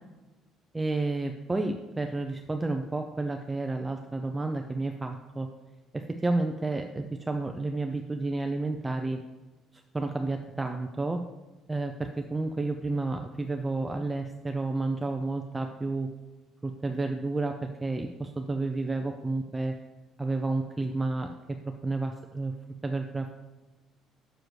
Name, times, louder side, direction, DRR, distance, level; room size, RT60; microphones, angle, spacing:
voice 1, 0.7-5.5 5.9-9.2 9.9-11.2 11.7-16.1 16.6-19.7 20.2-21.6 21.8-22.5 22.8-23.3, right 2 dB, 10° right, 4 dB, 0.4 m, -31 dB
7.5 x 7.1 x 3.2 m, 1.2 s
cardioid pair, 135°, 0 cm